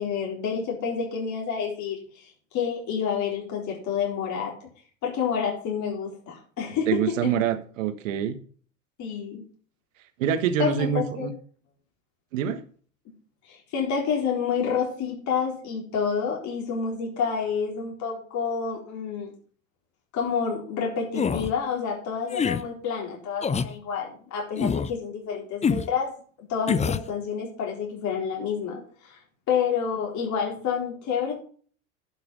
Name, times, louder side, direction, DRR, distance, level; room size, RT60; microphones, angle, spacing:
voice 1, 0.0-4.5 5.0-6.9 7.2-7.3 9.0-9.4 10.6-11.3 13.5-19.3 20.1-26.1 26.5-29.2 29.5-31.3, left 6 dB, 45° left, 4.1 m, -29 dB
voice 2, 6.9-8.4 10.2-11.3 12.3-12.6, right 9 dB, 70° right, 1.6 m, -25 dB
sound 1, 21.1-21.5 22.3-22.6 23.4-23.7 24.6-24.9 25.6-25.9 26.7-27.1, left 6 dB, 15° left, 0.7 m, -25 dB
11.5 x 6.4 x 5.4 m
hypercardioid pair, 80°, 40 cm